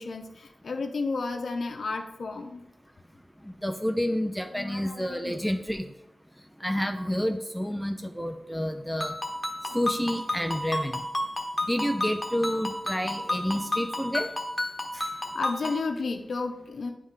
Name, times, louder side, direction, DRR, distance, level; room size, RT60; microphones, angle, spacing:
voice 1, 0.0-2.6 4.5-5.4 15.1-16.9, left 3 dB, 75° left, 4 dB, 0.5 m, -33 dB
voice 2, 3.4-5.8 6.6-9.2 9.7-11.0 11.7-14.3 14.9-15.1, equal, ahead, 6 dB, 0.4 m, -29 dB
Ringtone, 9.0-15.9, left 1 dB, 20° left, 1.1 m, -32 dB
9.4 x 3.2 x 3.7 m, 0.90 s
cardioid pair, 50°, 0 cm